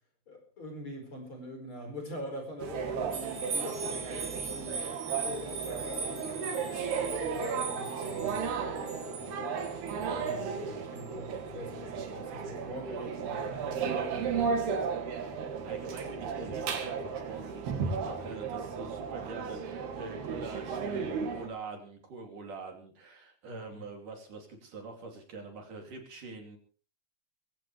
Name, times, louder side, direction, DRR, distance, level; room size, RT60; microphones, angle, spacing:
voice 1, 0.3-9.6 10.2-14.7 15.1-15.3 15.8-15.9 23.4-23.8, equal, 30° left, 4 dB, 5.4 m, -44 dB
sound 1, 2.6-21.5, right 5 dB, 85° right, 4.2 m, -34 dB
sound 2, 3.1-10.4 11.0-11.1, right 5 dB, 40° right, 4.9 m, -40 dB
voice 2, 15.6-26.6, right 4 dB, 55° right, 3 dB, 4.3 m, -44 dB
22.5 x 16.0 x 3.3 m, 0.39 s
omnidirectional pair, 4.4 m